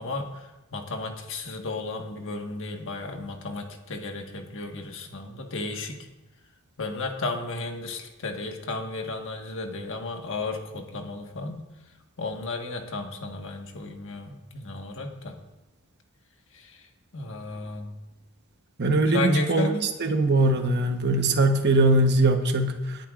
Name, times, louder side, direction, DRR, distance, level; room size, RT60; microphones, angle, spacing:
voice 1, 0.0-6.1 6.8-11.6 12.2-15.4 16.5-16.9 17.1-17.9 19.1-19.9, left 2 dB, 60° left, 3 dB, 1.5 m, -33 dB
voice 2, 18.8-19.7 20.0-23.0, right 2 dB, 50° right, 5 dB, 1.1 m, -21 dB
20.5 x 10.5 x 2.5 m, 1.0 s
head